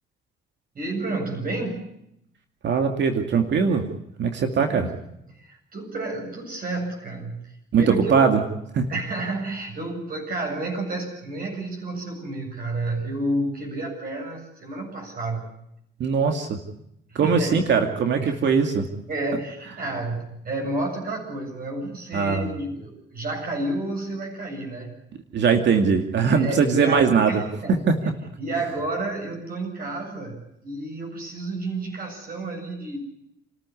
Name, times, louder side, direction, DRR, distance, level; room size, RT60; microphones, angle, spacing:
voice 1, 0.7-1.9 4.3-4.8 5.3-7.5 7.8-8.2 8.9-15.5 17.1-17.6 18.2-18.5 19.1-25.0 26.3-27.8 28.4-33.0, right 2 dB, 45° right, 1 dB, 7.9 m, -30 dB
voice 2, 2.6-3.8 4.2-4.9 7.7-8.4 8.7-8.9 16.0-16.6 17.1-18.9 22.1-22.5 25.3-27.4 27.7-27.9, right 5 dB, 65° right, 5 dB, 2.4 m, -20 dB
29.5 x 14.0 x 9.8 m, 0.80 s
cardioid pair, 90°, 20 cm